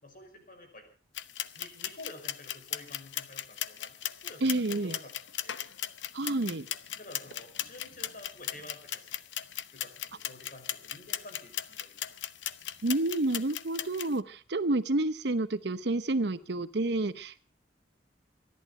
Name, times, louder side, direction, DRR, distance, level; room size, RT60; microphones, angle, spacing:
voice 1, 0.0-0.8 1.6-3.9 4.2-5.6 7.0-9.2 9.7-12.0, left 2 dB, 50° left, 6 dB, 5.3 m, -50 dB
sound 1, 1.1-14.1, left 11 dB, 85° left, 0.9 m, -38 dB
voice 2, 4.4-5.0 6.1-6.6 12.8-17.4, right 2 dB, 65° right, 14 dB, 0.9 m, -29 dB
25.0 x 11.5 x 4.9 m, 0.37 s
head